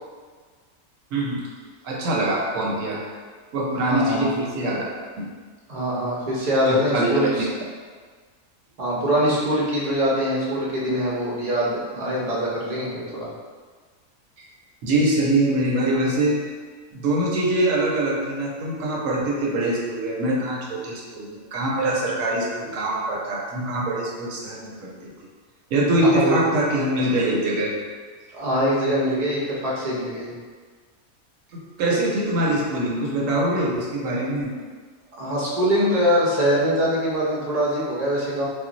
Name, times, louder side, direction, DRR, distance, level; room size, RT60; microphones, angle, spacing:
voice 1, 1.1-1.5 1.8-3.0 3.5-4.8 5.2-5.3 6.2-6.3 6.7-7.2 14.4-14.5 14.8-16.4 16.9-25.1 25.7-27.7 31.5-34.5, right 1 dB, 70° right, -3 dB, 0.9 m, -23 dB
voice 2, 3.8-4.3 5.7-7.5 8.8-13.3 26.1-26.4 28.3-30.3 35.2-38.5, equal, 50° right, -5 dB, 0.5 m, -23 dB
2.4 x 2.0 x 3.7 m, 1.5 s
omnidirectional pair, 1.5 m